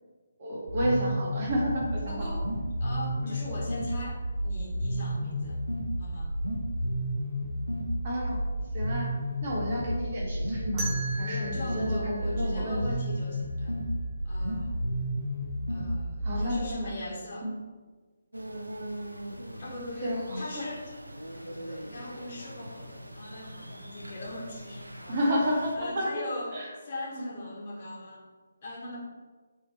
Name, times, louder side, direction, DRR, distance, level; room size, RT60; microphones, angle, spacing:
voice 1, 0.4-2.3 3.2-3.3 8.0-8.4 8.7-9.1 9.4-12.8 16.2-16.9 17.4-17.5 20.0-20.7 25.1-26.1 26.5-26.7 27.2-27.3, equal, 35° right, -3 dB, 2.0 m, -31 dB
sound 1, 0.7-16.7, equal, 65° right, 1.3 m, -31 dB
voice 2, 2.1-2.5 2.8-5.6 6.0-6.3 11.2-13.8 14.2-14.8 15.7-17.5 19.6-20.9 21.4-25.4 25.7-28.2 28.6-29.0, left 1 dB, 35° left, -4 dB, 1.8 m, -40 dB
sound 2, 10.8-13.6, right 2 dB, 15° right, 1.5 m, -40 dB
sound 3, 18.3-25.8, right 1 dB, 80° right, 0.7 m, -42 dB
7.6 x 3.8 x 4.4 m, 1.4 s
figure-of-eight pair, 145°, 0 cm